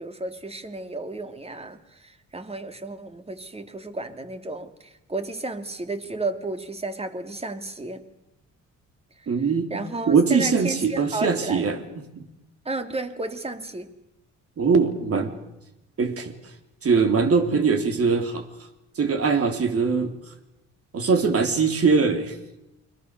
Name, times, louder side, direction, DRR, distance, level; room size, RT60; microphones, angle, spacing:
voice 1, 0.0-8.1 9.2-11.7 12.6-13.9, right 2 dB, 20° right, 8 dB, 2.6 m, -33 dB
voice 2, 9.3-9.7 10.1-12.2 14.6-15.4 16.0-16.3 16.8-18.4 19.0-20.1 20.9-22.3, right 5 dB, 50° right, 6 dB, 3.9 m, -22 dB
29.0 x 23.0 x 6.8 m, 0.93 s
cardioid pair, 90°, 30 cm